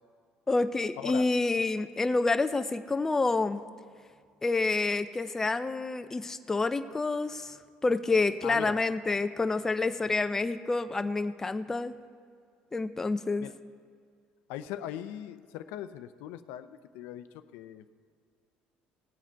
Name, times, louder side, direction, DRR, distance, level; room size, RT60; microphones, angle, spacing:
voice 1, 0.5-3.6 4.4-7.6 7.8-11.9 12.7-13.5, left 3 dB, 15° left, 10 dB, 0.4 m, -28 dB
voice 2, 8.4-8.8 13.4-13.5 14.5-17.3 17.5-17.9, left 11 dB, 85° left, 11 dB, 0.5 m, -40 dB
18.5 x 7.4 x 4.5 m, 2.1 s
cardioid pair, 125°, 3 cm